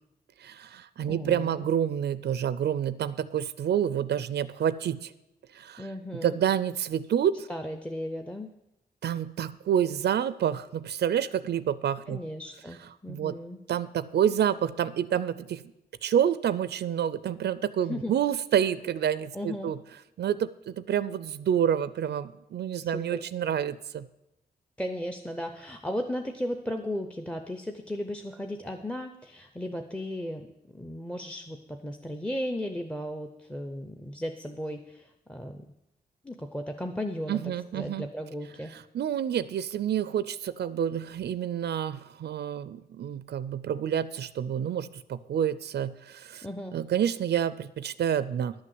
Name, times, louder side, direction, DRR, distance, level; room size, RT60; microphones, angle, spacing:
voice 1, 0.4-5.1 5.5-5.9 6.2-7.5 9.0-12.2 13.1-13.3 13.7-15.6 16.0-19.8 20.2-24.1 37.3-38.1 38.7-46.5 46.7-48.5, right 9 dB, 90° right, 15 dB, 0.4 m, -28 dB
voice 2, 1.1-1.7 5.8-6.4 7.5-8.5 12.1-13.6 17.9-18.1 19.3-19.7 22.8-23.2 24.8-35.6 36.2-38.7 46.4-46.8, equal, 5° left, 6 dB, 0.5 m, -35 dB
11.0 x 6.4 x 7.7 m, 0.89 s
wide cardioid pair, 160°, 17 cm